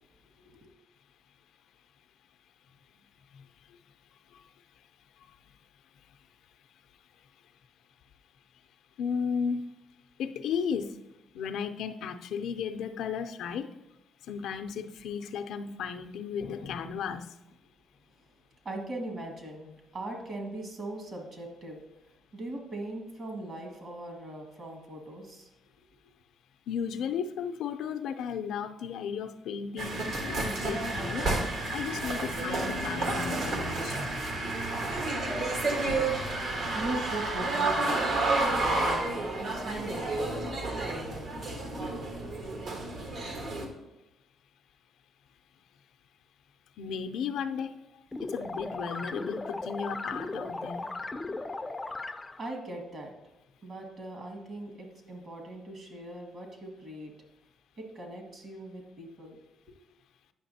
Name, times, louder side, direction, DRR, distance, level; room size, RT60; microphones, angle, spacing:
voice 1, 0.4-0.7 18.6-25.5 36.5-38.0 38.5-40.4 40.7-41.8 52.4-57.1 57.8-59.4 59.7-59.8, right 1 dB, 50° right, 1.9 m, -40 dB
voice 2, 9.0-9.7 10.2-10.9 11.3-13.7 14.3-17.3 26.7-31.3 31.7-34.0 46.8-47.7 48.2-50.9, left 6 dB, 80° left, 0.5 m, -34 dB
sound 1, 29.8-43.7, right 2 dB, 65° right, 1.4 m, -30 dB
sound 2, 48.1-52.5, left 2 dB, 20° left, 0.4 m, -37 dB
9.3 x 5.8 x 2.8 m
cardioid pair, 90°, 0 cm